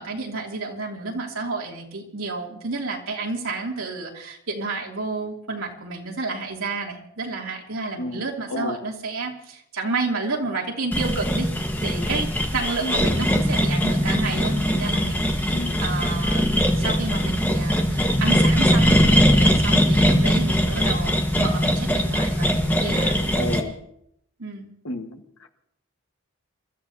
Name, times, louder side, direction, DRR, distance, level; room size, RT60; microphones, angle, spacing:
voice 1, 0.0-11.5 11.8-23.3 24.4-24.7, right 3 dB, 85° right, -1 dB, 2.8 m, -31 dB
sound 1, 10.9-23.6, equal, 10° left, 1.4 m, -21 dB
voice 2, 15.5-15.9 23.4-23.8 24.8-25.2, left 1 dB, 85° left, 4 dB, 1.6 m, -30 dB
28.0 x 14.0 x 2.8 m, 0.74 s
head